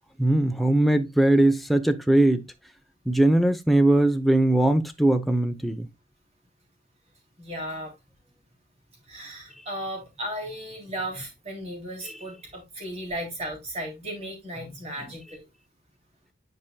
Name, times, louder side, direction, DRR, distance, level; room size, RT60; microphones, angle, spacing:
voice 1, 0.2-2.5 3.1-5.9, right 1 dB, ahead, 0.6 m, -20 dB
voice 2, 7.4-7.9 9.1-15.5, equal, 35° right, 3.1 m, -35 dB
10.5 x 4.8 x 2.2 m
head